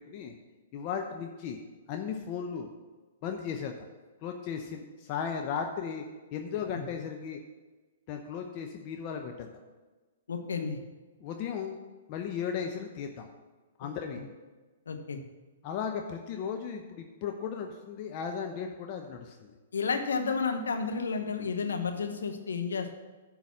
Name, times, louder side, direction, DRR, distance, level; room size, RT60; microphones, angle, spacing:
voice 1, 0.7-1.6 1.9-2.7 3.2-3.7 4.2-6.0 6.3-7.4 8.1-9.5 11.2-11.8 12.1-13.3 13.8-14.2 15.6-19.5, left 7 dB, 40° left, 3 dB, 0.8 m, -36 dB
voice 2, 10.3-10.8 14.9-15.2 19.7-22.9, left 5 dB, 75° left, 5 dB, 1.1 m, -31 dB
10.5 x 4.0 x 7.3 m, 1.3 s
hypercardioid pair, 120°, 0 cm